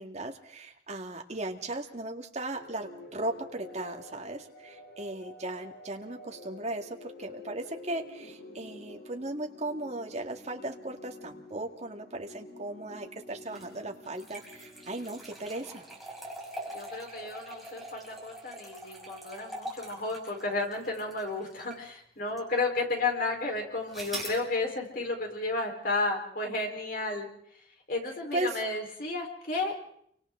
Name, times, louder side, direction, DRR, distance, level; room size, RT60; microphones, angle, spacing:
voice 1, 0.0-15.8 28.3-28.6, right 2 dB, 40° right, 3 dB, 2.1 m, -37 dB
sound 1, 2.5-16.3, left 2 dB, 70° left, 5.8 m, -49 dB
sound 2, 13.4-21.9 22.4-22.5 23.9-24.4, right 1 dB, ahead, 5.8 m, -43 dB
voice 2, 16.7-27.3 27.9-29.7, left 3 dB, 55° left, 2 dB, 4.5 m, -32 dB
29.5 x 25.0 x 3.9 m, 0.68 s
head